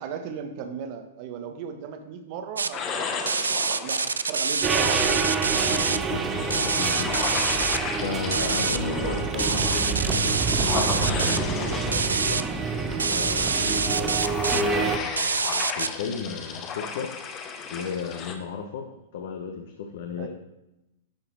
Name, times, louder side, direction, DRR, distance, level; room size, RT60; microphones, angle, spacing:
voice 1, 0.0-5.3 8.5-8.7 20.1-20.3, right 7 dB, 45° right, 6 dB, 1.1 m, -37 dB
sound 1, 2.6-2.7 3.3-6.0 6.5-7.8 8.3-8.8 9.4-11.4 11.9-12.4 13.0-14.6 15.2-15.9, right 5 dB, 85° right, 0.3 m, -26 dB
sound 2, 2.7-18.4, left 6 dB, 35° left, 1.0 m, -35 dB
sound 3, 4.6-15.0, right 5 dB, 20° right, 0.7 m, -28 dB
voice 2, 5.6-7.6 8.0-12.4 13.1-17.1 17.7-18.9 19.1-20.3, left 6 dB, 65° left, 3 dB, 0.8 m, -34 dB
11.0 x 4.0 x 4.6 m, 0.91 s
hypercardioid pair, 110°, 0 cm